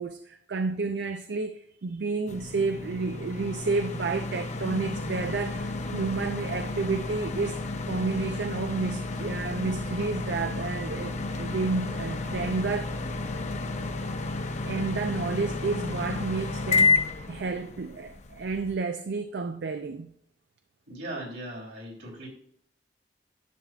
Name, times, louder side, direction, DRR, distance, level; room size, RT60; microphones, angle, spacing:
voice 1, 0.0-7.6 7.9-13.0 14.7-17.0 17.3-20.1, right 3 dB, 75° right, 0.5 m, -31 dB
sound 1, 2.3-18.7, left 3 dB, 40° left, 0.7 m, -31 dB
voice 2, 20.9-22.3, right 1 dB, 90° right, 3.2 m, -38 dB
10.5 x 7.4 x 2.4 m
head